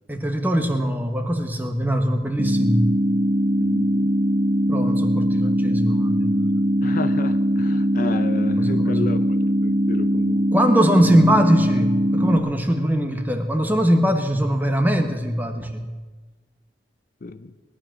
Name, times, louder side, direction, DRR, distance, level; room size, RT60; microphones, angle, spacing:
voice 1, 0.1-2.9 4.7-6.7 8.6-9.1 10.5-15.9, equal, 10° right, 6 dB, 1.2 m, -21 dB
sound 1, 2.4-12.4, equal, 35° right, 1.4 m, -21 dB
voice 2, 3.6-4.1 6.8-10.5 17.2-17.5, left 3 dB, 50° left, 11 dB, 0.6 m, -32 dB
19.5 x 11.5 x 6.1 m, 1.3 s
head